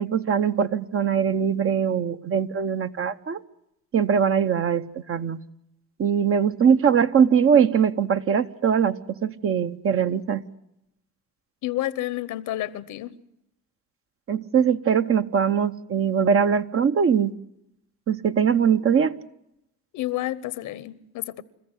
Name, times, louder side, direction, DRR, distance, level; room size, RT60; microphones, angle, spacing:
voice 1, 0.0-3.4 3.9-5.4 6.0-10.4 14.3-17.3 18.1-19.2, right 7 dB, 45° right, 0.9 m, -21 dB
voice 2, 11.6-13.2 19.9-21.4, left 14 dB, 85° left, 1.0 m, -30 dB
28.5 x 14.5 x 8.0 m
cardioid pair, 90°, 30 cm